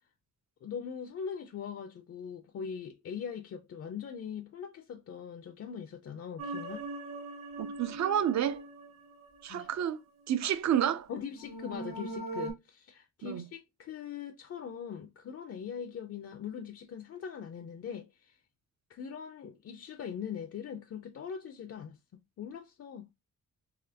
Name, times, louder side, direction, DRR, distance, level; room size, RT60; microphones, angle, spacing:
voice 1, 0.6-6.9 9.5-9.7 11.1-18.4 18.9-22.0 22.4-23.1, left 7 dB, 45° left, 0.4 m, -41 dB
sound 1, 6.4-9.7 11.3-12.5, right 2 dB, 85° right, 1.3 m, -41 dB
voice 2, 7.6-8.6 9.4-11.1 13.2-13.4, right 10 dB, 55° right, 0.4 m, -30 dB
4.0 x 2.8 x 2.7 m
wide cardioid pair, 150°, 32 cm